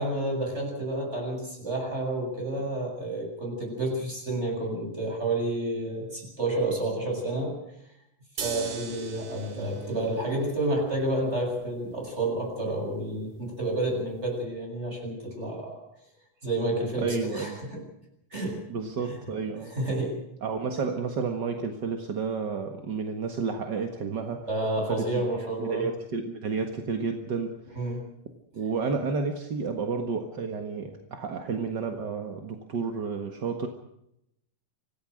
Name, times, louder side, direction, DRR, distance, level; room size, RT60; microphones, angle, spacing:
voice 1, 0.0-7.6 8.4-15.8 16.4-17.8 18.3-18.6 19.0-19.2 19.7-20.2 24.5-25.9 27.7-28.0, right 1 dB, 20° right, 1 dB, 7.9 m, -30 dB
sound 1, 8.4-14.4, right 6 dB, 75° right, 4.0 m, -42 dB
voice 2, 17.0-17.6 18.7-19.7 20.4-24.5 24.9-25.2 25.6-27.9 28.5-33.7, right 5 dB, 40° right, 5 dB, 1.7 m, -31 dB
26.0 x 17.5 x 6.4 m, 0.80 s
omnidirectional pair, 3.7 m